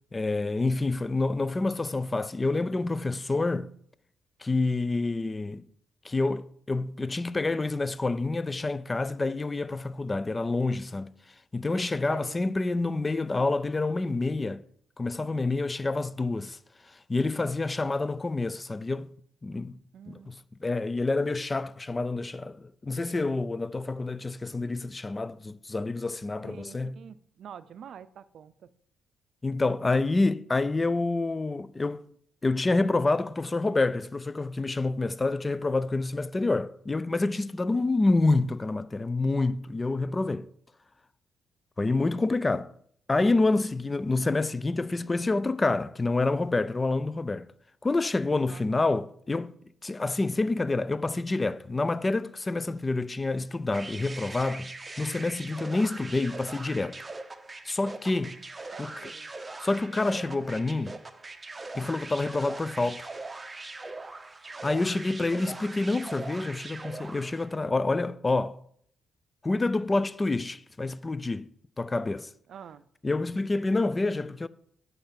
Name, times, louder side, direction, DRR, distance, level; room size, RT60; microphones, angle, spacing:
voice 1, 0.1-3.7 4.4-5.7 6.0-11.1 11.5-14.6 15.0-16.6 16.9-19.1 19.4-19.8 20.1-20.3 20.6-27.0 29.4-32.0 32.4-40.5 41.8-42.7 43.1-47.5 47.8-54.7 55.0-57.0 57.6-58.4 58.8-59.1 59.6-61.0 61.7-63.1 64.6-68.6 69.4-72.3 73.0-74.5, left 3 dB, 20° left, 0.4 m, -28 dB
voice 2, 12.1-12.5 19.9-20.3 26.4-28.7 48.5-48.9 58.7-59.3 60.2-60.5 72.5-72.9, right 8 dB, 65° right, 0.5 m, -47 dB
sound 1, 53.7-67.5, right 2 dB, 20° right, 0.8 m, -41 dB
8.7 x 5.4 x 5.8 m
cardioid pair, 90°, 0 cm